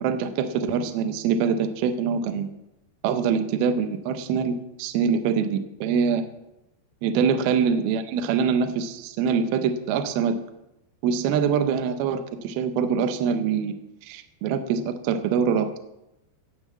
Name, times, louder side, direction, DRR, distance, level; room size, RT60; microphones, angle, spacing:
voice 1, 0.0-2.5 3.0-6.2 7.0-10.4 11.0-13.8 14.0-15.8, right 6 dB, 75° right, 8 dB, 2.3 m, -24 dB
17.0 x 6.1 x 7.3 m, 0.88 s
omnidirectional pair, 5.3 m